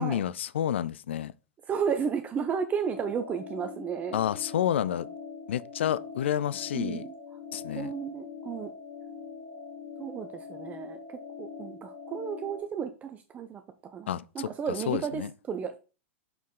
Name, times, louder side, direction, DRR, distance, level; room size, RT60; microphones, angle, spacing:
voice 1, 0.0-1.3 4.1-5.1 5.5-7.0 7.5-7.9 14.1-14.5 14.9-15.3, left 10 dB, 65° left, 0.4 m, -29 dB
voice 2, 1.7-4.2 6.7-7.1 7.8-8.7 10.0-11.0 11.4-13.6 13.9-15.8, right 7 dB, 20° right, 0.6 m, -33 dB
sound 1, 2.9-12.6, left 5 dB, 35° left, 1.7 m, -43 dB
6.3 x 5.2 x 3.7 m
figure-of-eight pair, 95°, 7 cm